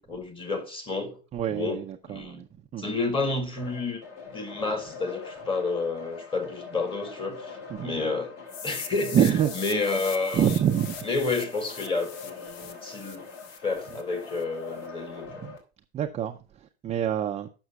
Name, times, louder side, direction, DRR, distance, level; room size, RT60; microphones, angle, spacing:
voice 1, 0.0-1.2 1.5-2.4 2.8-4.0 4.3-8.4 8.6-10.5 11.0-13.3 13.6-15.3, left 3 dB, 15° left, 1.9 m, -30 dB
voice 2, 1.3-2.5 2.7-2.9 7.7-7.9 9.1-9.5 10.3-11.0 15.4-15.5 15.9-16.4 16.8-17.5, right 9 dB, 20° right, 0.5 m, -25 dB
sound 1, 3.6-15.6, left 5 dB, 45° left, 3.6 m, -43 dB
sound 2, 8.5-14.4, left 6 dB, 65° left, 1.6 m, -41 dB
7.9 x 6.2 x 5.8 m
hypercardioid pair, 115°, 34 cm